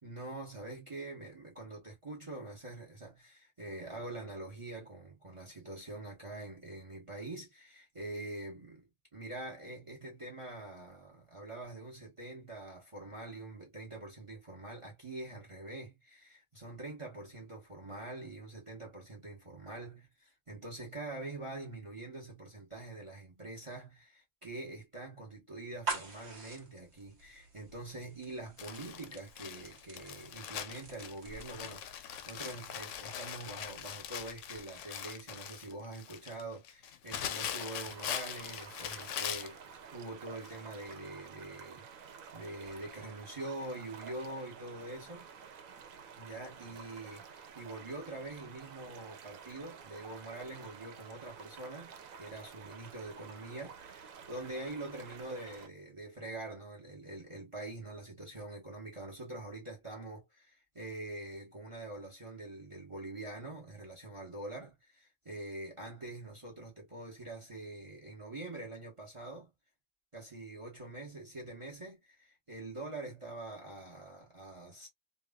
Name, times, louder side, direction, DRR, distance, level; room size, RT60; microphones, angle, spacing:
voice 1, 0.0-39.6 39.9-45.3 46.1-69.5 70.1-74.9, right 2 dB, 25° right, 1.1 m, -45 dB
sound 1, 25.6-35.4, right 4 dB, 55° right, 1.3 m, -47 dB
Crumpling crinkling, 28.6-39.6 40.4-40.6 40.9-41.0, left 9 dB, 70° left, 0.9 m, -41 dB
sound 2, 37.6-55.7, right 6 dB, 85° right, 1.1 m, -51 dB
3.1 x 2.5 x 2.2 m
omnidirectional pair, 1.4 m